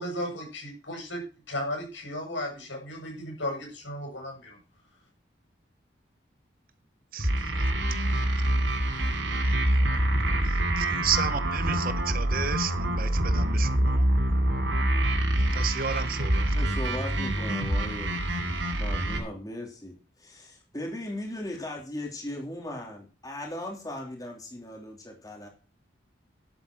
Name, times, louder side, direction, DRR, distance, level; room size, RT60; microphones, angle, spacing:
voice 1, 0.0-4.6, left 1 dB, 85° left, 6.8 m, -35 dB
sound 1, 7.2-19.2, right 1 dB, 85° right, 3.1 m, -26 dB
voice 2, 10.8-14.1 15.5-16.5, right 7 dB, 50° right, 1.2 m, -32 dB
voice 3, 16.5-18.2 18.8-25.5, left 1 dB, 20° left, 3.0 m, -38 dB
11.0 x 8.5 x 6.2 m
head